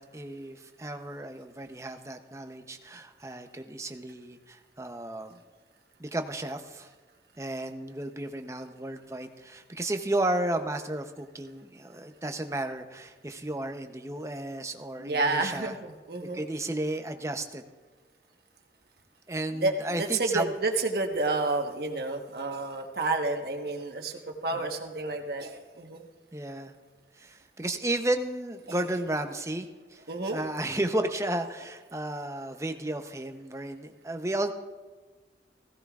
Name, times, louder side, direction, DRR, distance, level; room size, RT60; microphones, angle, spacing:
voice 1, 0.0-5.4 6.0-6.9 7.4-15.7 16.3-17.6 19.3-20.5 24.5-24.6 26.3-26.7 27.2-30.0 30.3-34.5, right 1 dB, 15° right, 6 dB, 0.6 m, -33 dB
voice 2, 15.0-16.4 19.5-26.0 28.7-28.8 30.1-30.4, right 3 dB, 65° right, 4 dB, 1.2 m, -30 dB
16.0 x 16.0 x 2.4 m, 1.4 s
head